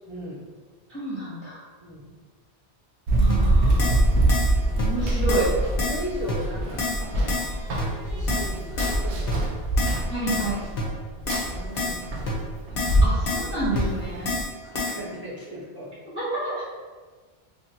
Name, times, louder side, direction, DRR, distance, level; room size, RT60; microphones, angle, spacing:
voice 1, 0.1-0.5 1.8-2.1 5.8-7.5 8.0-9.5 11.4-12.3 14.6-15.9, equal, 25° right, -9 dB, 0.7 m, -37 dB
voice 2, 0.9-1.6 3.2-3.9 4.8-5.5 10.1-10.6 13.0-14.4 16.2-16.6, right 2 dB, 15° left, -9 dB, 0.5 m, -29 dB
Run, 3.1-14.4, right 1 dB, 80° right, 0.9 m, -24 dB
Keyboard (musical), 3.3-3.4 3.8-4.0 4.3-4.5 4.8-4.9 5.3-5.5 5.8-6.0 6.3-6.4 6.8-7.0 7.3-7.5 7.8-7.9 8.3-8.5 8.8-9.0 9.3-9.4 9.8-10.0 10.3-10.5 10.8-10.9 11.3-11.5 11.8-12.0 12.3-12.4 12.8-13.0 13.3-13.5 13.8-13.9 14.3-14.5 14.7-15.0, left 3 dB, 60° left, 0.9 m, -28 dB
3.1 x 2.7 x 2.7 m, 1.4 s
omnidirectional pair, 1.1 m